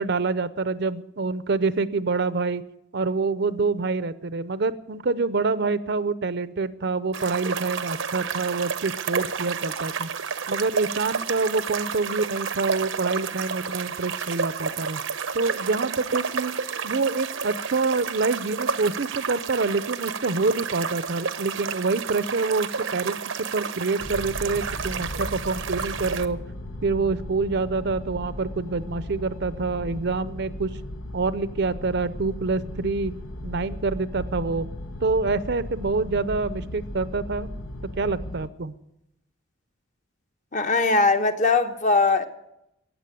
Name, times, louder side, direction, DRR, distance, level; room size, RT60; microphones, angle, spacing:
voice 1, 0.0-2.6 2.9-10.1 10.5-15.0 15.3-16.5 16.8-23.2 23.5-26.4 26.8-30.7 31.1-33.1 33.4-34.7 35.0-37.5 38.0-38.7, right 3 dB, 55° right, 0.7 m, -26 dB
sound 1, 7.1-26.3, right 6 dB, 80° right, 0.9 m, -31 dB
sound 2, 24.0-38.5, left 1 dB, 80° left, 1.1 m, -36 dB
voice 2, 40.5-42.3, left 3 dB, 40° left, 1.1 m, -20 dB
15.0 x 9.3 x 9.3 m
head